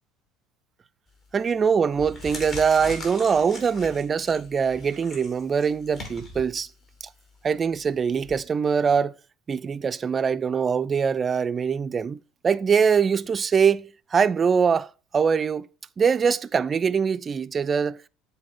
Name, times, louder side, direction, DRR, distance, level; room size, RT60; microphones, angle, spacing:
sound 1, 1.1-1.4 1.9-8.4, left 2 dB, 45° left, 3.0 m, -41 dB
voice 1, 1.3-6.7 7.4-9.1 9.5-15.7 16.0-18.1, right 6 dB, 30° right, 0.4 m, -23 dB
7.5 x 4.0 x 5.6 m
hypercardioid pair, 80°, 0 cm